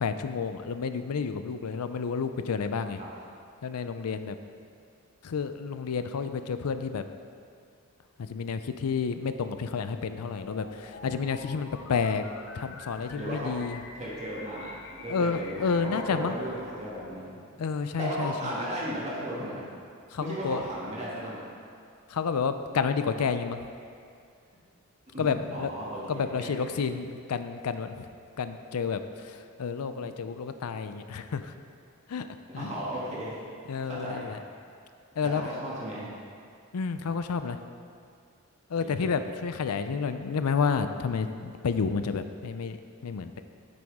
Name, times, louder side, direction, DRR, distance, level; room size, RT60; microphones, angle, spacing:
voice 1, 0.0-3.0 3.6-4.4 5.2-7.1 8.2-12.2 12.5-13.8 15.1-16.4 17.6-18.3 20.1-20.6 22.1-23.6 25.2-25.7 26.1-28.1 28.4-31.5 32.1-32.3 32.6-32.7 33.7-34.4 35.2-35.4 36.7-37.6 38.7-42.8 43.0-43.4, left 5 dB, 90° left, 10 dB, 0.5 m, -30 dB
sound 1, 10.4-17.1, left 3 dB, 55° left, 0.7 m, -46 dB
voice 2, 13.1-13.5 13.9-17.4 18.0-19.8 20.2-21.4 25.1-26.5 30.0-30.1 32.6-33.4 33.8-34.4 35.2-36.1 38.8-39.2, right 1 dB, 30° right, -7 dB, 2.1 m, -35 dB
9.4 x 7.7 x 3.6 m, 2.3 s
head